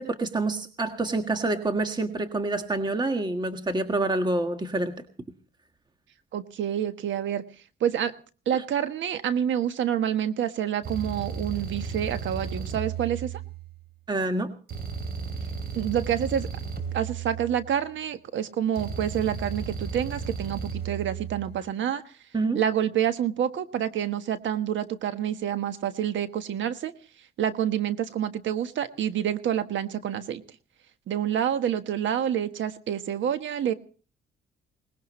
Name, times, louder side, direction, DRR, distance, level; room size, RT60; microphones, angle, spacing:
voice 1, 0.0-5.0 14.1-14.5 22.3-22.6, right 2 dB, 20° right, 6 dB, 1.7 m, -27 dB
voice 2, 6.3-7.4 7.8-8.1 8.4-13.4 15.7-16.5 16.9-22.0 22.5-26.9 27.4-30.4 31.1-33.7, right 9 dB, 70° right, 10 dB, 1.4 m, -28 dB
sound 1, 10.8-13.9 14.7-18.0 18.8-21.6, right 6 dB, 50° right, 3.4 m, -34 dB
22.0 x 19.5 x 3.2 m, 0.39 s
cardioid pair, 90°, 20 cm